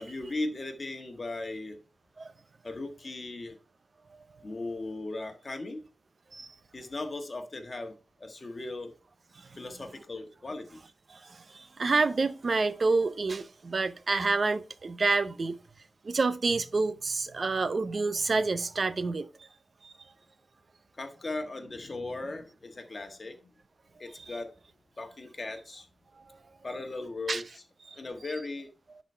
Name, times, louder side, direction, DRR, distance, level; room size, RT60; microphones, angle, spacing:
voice 1, 0.0-1.8 2.6-3.6 4.4-5.8 6.7-7.9 8.2-8.9 9.6-10.8 21.0-23.4 24.0-24.5 25.0-25.9 26.6-27.4 27.9-28.7, left 2 dB, 35° left, 1.4 m, -37 dB
voice 2, 11.1-15.6 16.0-19.3 19.8-19.9 27.3-27.4 27.9-28.0, right 3 dB, 45° right, 0.6 m, -28 dB
10.0 x 4.1 x 4.4 m
wide cardioid pair, 155°, 0 cm